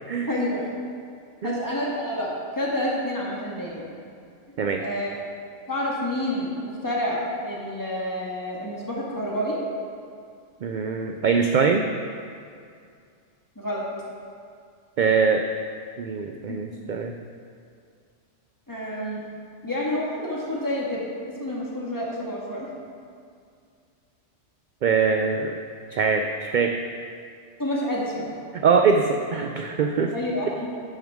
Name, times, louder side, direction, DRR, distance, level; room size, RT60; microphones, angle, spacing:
voice 1, 0.3-0.7 1.4-3.8 4.8-5.2 5.7-9.6 13.5-13.8 16.5-16.6 18.7-19.2 19.6-22.7 27.6-28.3 30.1-30.8, left 1 dB, 15° left, -5 dB, 1.7 m, -29 dB
voice 2, 10.6-11.9 15.0-15.4 16.0-17.2 24.8-25.6 25.9-26.8 28.5-30.1, right 5 dB, 55° right, 4 dB, 0.5 m, -22 dB
10.0 x 9.3 x 3.6 m, 2.3 s
omnidirectional pair, 1.2 m